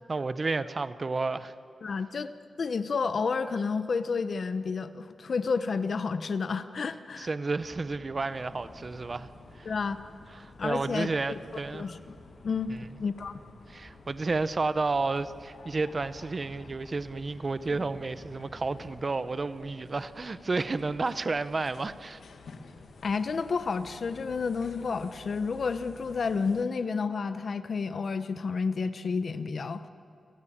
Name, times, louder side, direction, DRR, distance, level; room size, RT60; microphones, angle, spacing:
voice 1, 0.1-1.5 7.2-9.3 9.5-9.7 10.3-11.9 12.7-12.9 13.7-22.2, right 3 dB, 30° right, 14 dB, 0.7 m, -31 dB
voice 2, 1.8-2.3 2.6-7.3 9.7-10.0 10.6-11.4 11.7-12.2 12.4-12.7 13.0-13.4 23.0-29.8, left 5 dB, 50° left, 12 dB, 0.8 m, -30 dB
London Underground Train Interior A, 7.6-19.0, equal, ahead, 2.1 m, -54 dB
sound 1, 8.3-26.7, left 4 dB, 90° left, 1.9 m, -51 dB
28.5 x 17.0 x 8.8 m, 2.5 s
wide cardioid pair, 170°, 0 cm